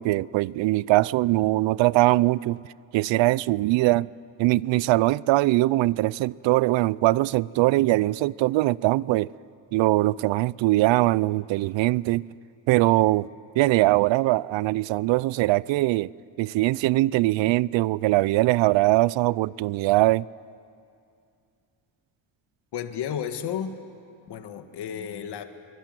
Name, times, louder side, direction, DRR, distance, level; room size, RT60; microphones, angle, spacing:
voice 1, 0.0-2.6 2.9-4.1 4.4-9.3 9.7-12.2 12.7-13.3 13.6-16.1 16.4-20.3, right 18 dB, 80° right, 0.5 m, -21 dB
voice 2, 22.7-23.8 24.3-25.4, left 8 dB, 60° left, 1.6 m, -32 dB
23.5 x 19.5 x 9.2 m
cardioid pair, 125°, 45 cm